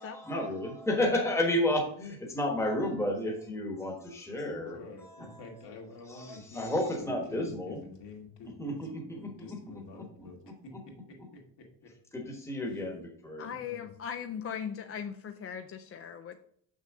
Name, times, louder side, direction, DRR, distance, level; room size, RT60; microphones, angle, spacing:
voice 1, 0.0-5.4 6.1-7.8 8.6-10.8 12.1-13.5, left 1 dB, 5° left, 1.3 m, -32 dB
voice 2, 4.4-11.9 12.7-13.0 13.4-13.9, left 3 dB, 65° left, 2.3 m, -49 dB
voice 3, 13.4-16.4, left 8 dB, 35° left, 0.4 m, -39 dB
6.8 x 6.4 x 3.6 m
cardioid pair, 170°, 44 cm